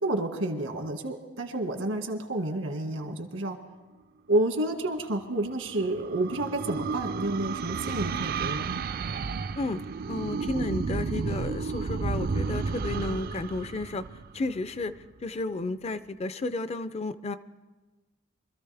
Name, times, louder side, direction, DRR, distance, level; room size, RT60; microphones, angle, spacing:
voice 1, 0.0-3.6 4.3-8.9, right 1 dB, 85° right, 5 dB, 1.7 m, -30 dB
sound 1, 5.3-14.8, right 5 dB, 50° right, 0.4 m, -32 dB
voice 2, 10.1-14.0 14.3-14.9 15.2-17.4, left 2 dB, 30° left, 13 dB, 0.4 m, -32 dB
25.0 x 13.5 x 3.4 m, 1.2 s
head